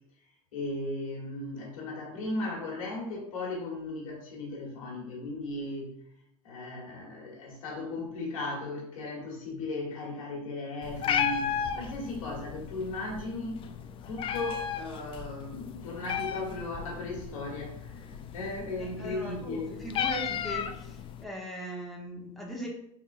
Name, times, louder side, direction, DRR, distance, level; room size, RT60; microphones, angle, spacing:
voice 1, 0.5-5.9 6.4-13.7 14.1-18.0 18.3-19.8, left 2 dB, 75° left, -2 dB, 1.4 m, -36 dB
Meow, 10.8-21.2, left 8 dB, 30° left, 0.4 m, -35 dB
voice 2, 19.0-20.7 21.2-22.7, right 1 dB, ahead, -3 dB, 1.0 m, -39 dB
4.1 x 3.7 x 2.5 m, 0.75 s
hypercardioid pair, 90°, 17 cm